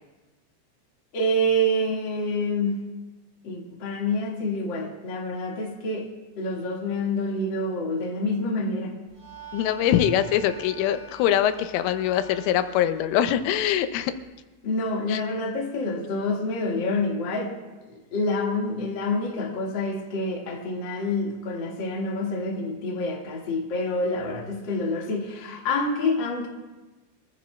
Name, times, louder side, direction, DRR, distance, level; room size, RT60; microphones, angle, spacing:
voice 1, 1.1-2.8 3.4-6.1 6.4-8.9 14.6-17.5 17.9-26.5, left 1 dB, 65° left, -2 dB, 1.1 m, -27 dB
sound 1, 9.1-14.3, right 3 dB, 70° right, 8.5 m, -46 dB
voice 2, 9.5-14.1 15.1-15.2, left 10 dB, 90° left, 10 dB, 3.3 m, -23 dB
25.5 x 14.5 x 2.3 m, 1.2 s
omnidirectional pair, 5.6 m